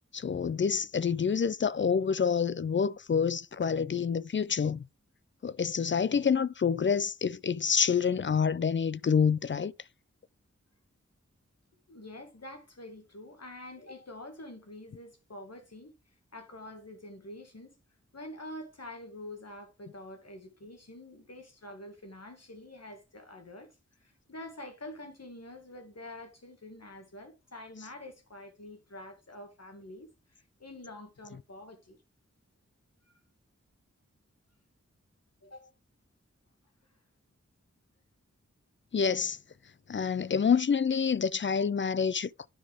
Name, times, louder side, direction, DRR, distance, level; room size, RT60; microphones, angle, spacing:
voice 1, 0.1-4.9 5.4-9.7 38.9-39.4 39.9-42.5, left 6 dB, 40° left, 0.4 m, -27 dB
voice 2, 11.9-15.9 16.3-17.7 18.1-23.7 24.0-32.0 35.4-35.7, left 1 dB, 60° left, 2.2 m, -46 dB
10.0 x 5.0 x 3.6 m
cardioid pair, 40°, 29 cm